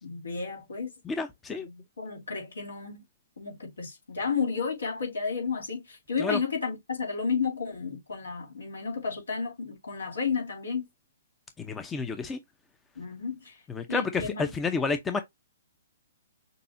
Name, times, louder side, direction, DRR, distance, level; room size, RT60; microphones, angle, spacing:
voice 1, 0.0-0.9 1.5-3.0 3.4-10.9 12.9-13.6 13.9-14.4, left 5 dB, 75° left, 3.0 m, -32 dB
voice 2, 1.0-1.7 6.2-6.4 11.6-12.4 13.7-15.2, left 4 dB, 15° left, 0.7 m, -30 dB
6.7 x 2.8 x 2.6 m
figure-of-eight pair, 125°, 0 cm